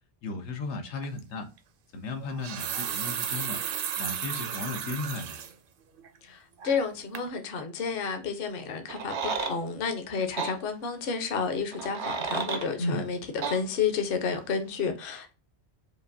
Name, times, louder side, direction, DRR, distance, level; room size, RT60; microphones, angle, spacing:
voice 1, 0.2-1.5 1.9-3.6 4.0-5.4 12.8-13.1, left 2 dB, 90° left, 1.1 m, -35 dB
sound 1, 1.0-1.2 2.2-5.5 6.0-6.1 6.6-6.9 7.1-7.3, right 8 dB, 60° right, 0.7 m, -34 dB
voice 2, 6.2-15.3, left 5 dB, 60° left, 0.9 m, -31 dB
sound 2, 8.9-9.6 10.4-10.5 11.7-12.7 13.4-13.6, right 5 dB, 80° right, 1.0 m, -31 dB
5.1 x 2.5 x 2.6 m
omnidirectional pair, 1.1 m